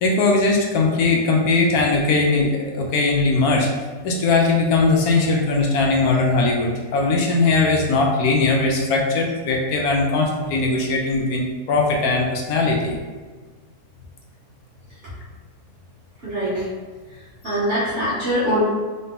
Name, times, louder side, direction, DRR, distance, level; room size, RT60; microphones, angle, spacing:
voice 1, 0.0-3.7 4.0-13.0 17.4-17.6, left 3 dB, 75° left, 0 dB, 1.0 m, -19 dB
voice 2, 16.2-16.6 17.4-18.6, equal, 50° right, -10 dB, 1.3 m, -22 dB
3.8 x 2.7 x 3.6 m, 1.4 s
omnidirectional pair, 1.7 m